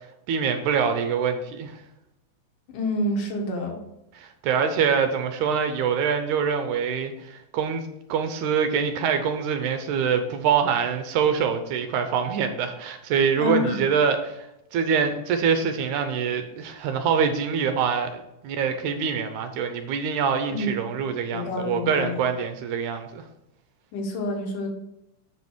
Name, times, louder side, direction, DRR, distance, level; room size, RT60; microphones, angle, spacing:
voice 1, 0.3-1.8 4.1-23.2, right 6 dB, 80° right, 7 dB, 2.0 m, -25 dB
voice 2, 2.7-3.8 13.4-13.8 20.5-21.0 21.3-22.3 23.9-24.7, left 1 dB, 80° left, 2 dB, 2.9 m, -28 dB
7.8 x 5.3 x 4.6 m, 0.87 s
omnidirectional pair, 3.7 m